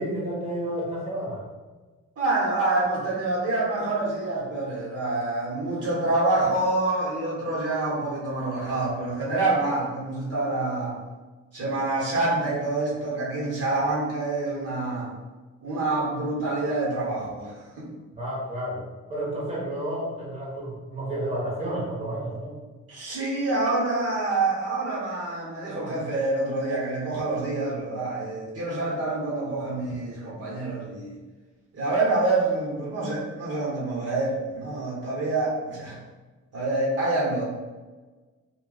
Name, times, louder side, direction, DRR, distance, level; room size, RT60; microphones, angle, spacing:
voice 1, 0.0-1.4 18.1-22.5, right 1 dB, 20° right, -6 dB, 1.1 m, -31 dB
voice 2, 2.2-11.0 11.5-15.1 15.6-17.9 22.9-31.1 31.7-36.0 36.5-37.4, right 2 dB, 55° right, -5 dB, 1.1 m, -27 dB
2.2 x 2.2 x 3.8 m, 1.3 s
cardioid pair, 90°, 30 cm